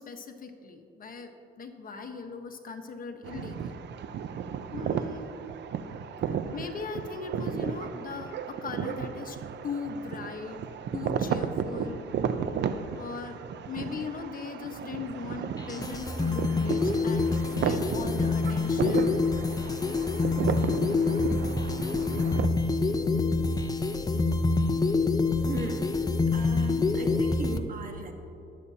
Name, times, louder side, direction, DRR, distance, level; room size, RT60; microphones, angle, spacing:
voice 1, 0.0-3.8 4.7-5.3 6.3-9.4 9.6-10.6 10.9-12.0 12.9-17.3 17.6-19.2, left 5 dB, 45° left, 4 dB, 1.2 m, -39 dB
sound 1, 3.2-22.5, right 7 dB, 60° right, 0.6 m, -34 dB
sound 2, 15.6-27.6, left 3 dB, 20° left, 0.7 m, -26 dB
voice 2, 25.4-28.1, right 4 dB, 45° right, 4 dB, 1.4 m, -37 dB
21.0 x 8.4 x 2.8 m, 2.9 s
cardioid pair, 90°, 20 cm